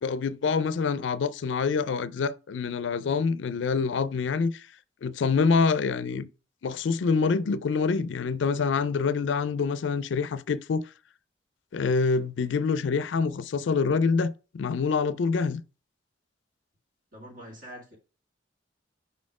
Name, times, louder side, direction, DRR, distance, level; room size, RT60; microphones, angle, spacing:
voice 1, 0.0-4.7 5.0-6.3 6.6-10.8 11.7-15.6, left 5 dB, 75° left, 0.4 m, -26 dB
voice 2, 17.1-18.0, equal, 45° right, 2.1 m, -44 dB
5.3 x 4.2 x 4.7 m
head